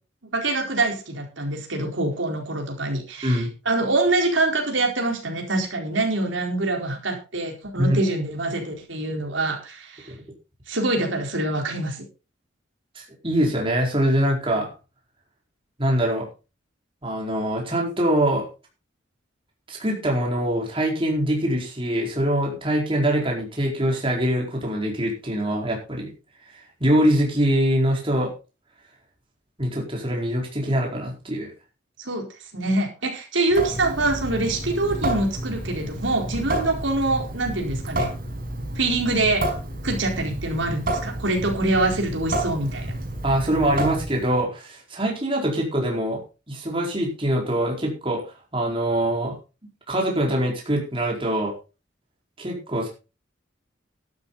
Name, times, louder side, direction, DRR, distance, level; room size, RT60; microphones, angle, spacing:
voice 1, 0.3-10.1 10.7-12.0 32.0-32.2 32.5-38.1 38.8-39.4 39.8-42.9, right 2 dB, 80° right, 1 dB, 4.3 m, -25 dB
voice 2, 12.9-14.7 15.8-16.3 17.0-18.5 19.7-26.1 26.8-28.3 29.6-31.5 43.2-46.2 46.5-48.2 48.5-49.3 49.9-51.5 52.4-52.9, right 1 dB, 30° right, -1 dB, 4.6 m, -23 dB
Water tap faucet / Sink (filling or washing) / Drip, 33.5-44.4, right 1 dB, 50° right, 5.3 m, -30 dB
12.5 x 12.0 x 4.1 m, 0.32 s
head